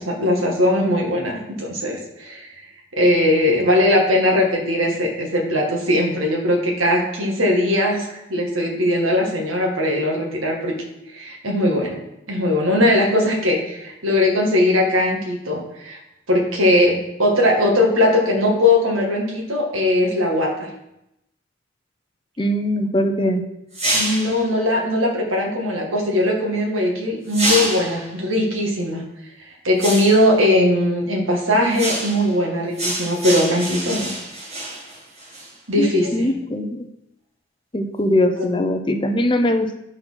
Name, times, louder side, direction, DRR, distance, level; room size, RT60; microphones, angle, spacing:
voice 1, 0.0-2.5 2.9-10.8 11.1-12.0 12.3-16.0 16.3-20.7 23.9-29.0 29.6-34.1 35.7-36.3 38.4-38.5, left 1 dB, 85° right, 0 dB, 1.9 m, -19 dB
voice 2, 22.4-23.4 35.8-36.8 37.7-39.7, left 1 dB, 25° left, 6 dB, 0.6 m, -21 dB
sound 1, 23.7-24.4 27.3-28.1 29.8-30.3 31.7-32.3 32.8-35.5, right 1 dB, 30° right, 1.8 m, -26 dB
8.1 x 4.4 x 5.7 m, 0.85 s
head